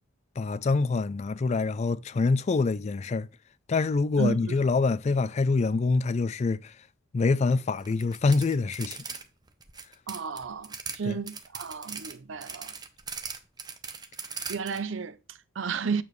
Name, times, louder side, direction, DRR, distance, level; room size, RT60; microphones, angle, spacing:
voice 1, 0.4-3.3 3.7-6.7 7.1-9.0 11.1-11.2, left 3 dB, 35° left, 0.3 m, -25 dB
voice 2, 4.2-4.6 10.1-12.8 14.5-16.0, right 5 dB, 65° right, 0.6 m, -33 dB
sound 1, 7.8-9.2 9.5-11.0 11.3-14.8, right 5 dB, 20° right, 0.7 m, -39 dB
8.6 x 6.9 x 3.1 m
head